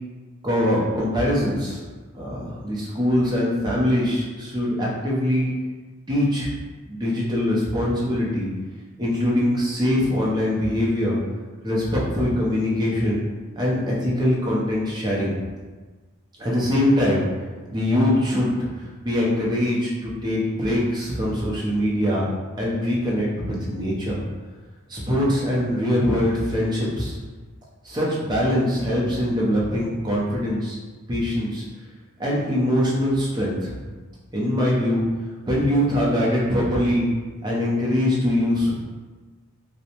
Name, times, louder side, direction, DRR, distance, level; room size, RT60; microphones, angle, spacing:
voice 1, 0.4-1.8 2.1-5.5 6.1-6.5 6.9-8.5 9.0-11.2 11.6-13.2 13.6-15.4 16.4-17.2 17.7-22.3 22.6-24.2 24.9-27.2 27.8-30.8 31.1-31.6 32.2-33.8 34.3-35.0 35.5-37.1 37.4-38.7, left 1 dB, 20° right, -6 dB, 0.5 m, -23 dB
2.6 x 2.0 x 2.8 m, 1.3 s
head